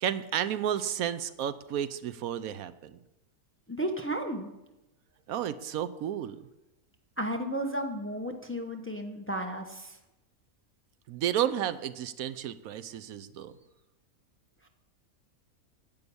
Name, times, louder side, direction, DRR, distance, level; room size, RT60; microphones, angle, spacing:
voice 1, 0.0-3.0 5.3-6.4 11.1-13.5, right 10 dB, 80° right, 14 dB, 1.1 m, -32 dB
voice 2, 3.7-4.5 7.2-10.0, right 1 dB, 10° left, 4 dB, 0.8 m, -33 dB
10.5 x 8.6 x 6.9 m, 0.98 s
omnidirectional pair, 1.5 m